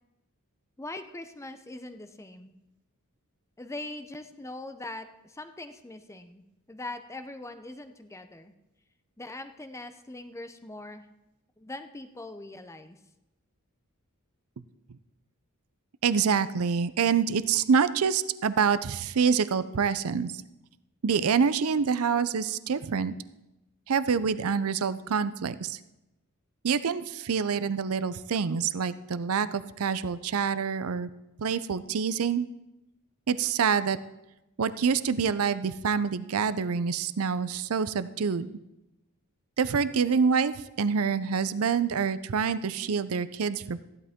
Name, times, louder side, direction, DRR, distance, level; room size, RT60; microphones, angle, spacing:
voice 1, 0.8-2.5 3.6-8.5 9.2-11.1 11.6-13.0, left 2 dB, 15° left, 9 dB, 0.6 m, -41 dB
voice 2, 16.0-20.3 21.0-23.1 23.9-25.8 26.6-31.1 31.4-32.5 33.3-34.0 34.6-38.5 39.6-43.8, right 6 dB, 70° right, 14 dB, 0.5 m, -26 dB
14.5 x 11.0 x 3.6 m, 0.94 s
head